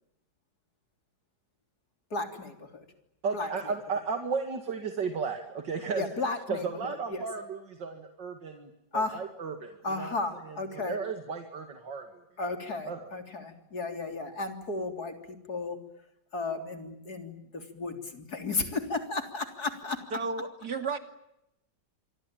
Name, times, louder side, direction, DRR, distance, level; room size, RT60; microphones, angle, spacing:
voice 1, 2.1-2.9 3.3-3.7 5.9-7.3 8.9-9.2 9.8-11.0 12.4-15.8 16.3-20.0, left 3 dB, 60° left, 6 dB, 4.1 m, -34 dB
voice 2, 3.2-6.0 6.5-9.7 10.0-10.1 10.5-10.6 10.9-12.2 12.9-13.0, right 5 dB, 80° right, 6 dB, 2.9 m, -34 dB
voice 3, 20.1-21.0, right 4 dB, 65° right, 8 dB, 3.2 m, -32 dB
27.0 x 23.5 x 9.0 m, 0.85 s
omnidirectional pair, 1.9 m